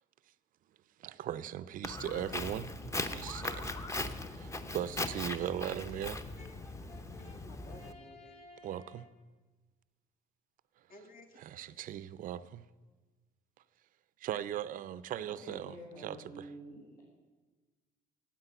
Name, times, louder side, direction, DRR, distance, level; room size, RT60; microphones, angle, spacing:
voice 1, 1.0-3.8 4.3-6.2 8.6-9.1 11.4-12.6 14.2-15.7 16.0-16.4, right 11 dB, 55° right, 16 dB, 0.5 m, -39 dB
Walk footsteps, 1.8-7.9, left 2 dB, 15° left, 0.7 m, -39 dB
Brass instrument, 5.9-9.2, left 2 dB, 40° left, 2.3 m, -56 dB
voice 2, 7.4-8.4 10.9-11.9, left 3 dB, 55° left, 3 dB, 1.6 m, -57 dB
voice 3, 15.2-17.0, right 1 dB, 80° left, -7 dB, 4.1 m, -49 dB
9.7 x 8.5 x 8.1 m, 1.3 s
cardioid pair, 110°, 17 cm